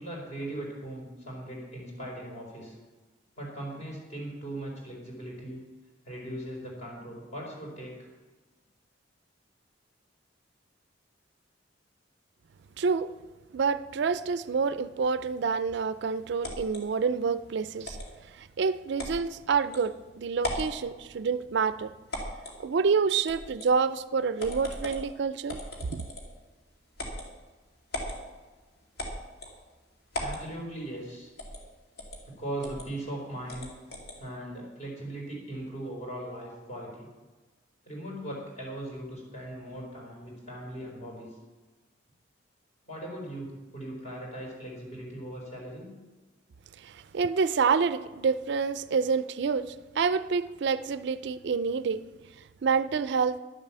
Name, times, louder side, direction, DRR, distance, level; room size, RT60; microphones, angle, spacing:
voice 1, 0.0-2.8 3.4-5.6 6.0-8.1 30.1-31.3 32.3-33.7 34.2-37.1 37.8-41.3 42.8-45.9, right 1 dB, 40° left, 4.4 m, -39 dB
voice 2, 12.8-13.1 13.5-18.0 18.4-21.9 22.6-25.6 25.9-26.0 46.8-52.0 52.6-53.4, right 5 dB, 60° right, 0.4 m, -27 dB
sound 1, 16.4-16.8 17.8-18.1 19.0-19.2 19.7-19.8 20.4-20.7 22.1-22.6 23.3-23.7 24.4-25.1 25.5-26.4 27.0-27.3 27.9-28.2 29.0-29.6 30.1-30.4 31.4-31.6 32.0-32.2 32.6-32.9 33.5-34.2, left 1 dB, 55° left, 2.4 m, -37 dB
12.0 x 7.4 x 7.3 m
head